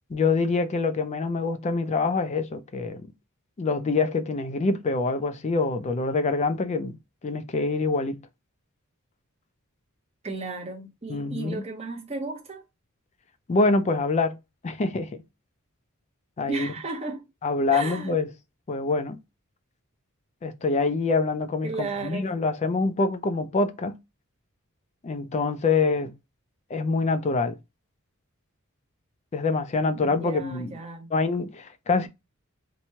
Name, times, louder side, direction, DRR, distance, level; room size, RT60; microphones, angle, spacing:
voice 1, 0.1-3.1 3.6-7.0 7.2-8.2 11.1-11.6 13.5-14.4 14.6-15.1 16.4-16.7 17.4-18.3 18.7-19.2 20.4-24.0 25.0-26.1 26.7-27.6 29.3-30.7 31.1-32.1, left 3 dB, 30° left, 0.3 m, -25 dB
voice 2, 10.2-12.6 16.5-17.3 17.7-18.1 21.6-22.3 30.0-31.1, right 3 dB, 30° right, 0.7 m, -34 dB
2.9 x 2.2 x 2.7 m
head